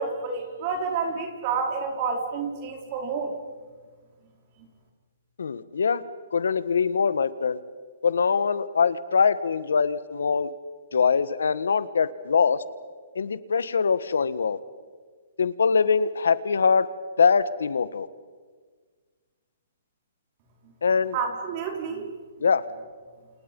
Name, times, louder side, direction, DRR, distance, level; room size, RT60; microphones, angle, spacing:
voice 1, 0.0-3.3 21.1-22.1, right 5 dB, 40° right, 3 dB, 4.5 m, -29 dB
voice 2, 5.4-6.0 6.3-7.6 8.0-10.5 10.9-12.6 13.1-14.6 15.4-16.9 17.2-18.1 20.8-21.2 22.4-22.6, left 5 dB, 85° left, 15 dB, 1.4 m, -23 dB
30.0 x 28.5 x 5.5 m, 1.5 s
hypercardioid pair, 145°, 0 cm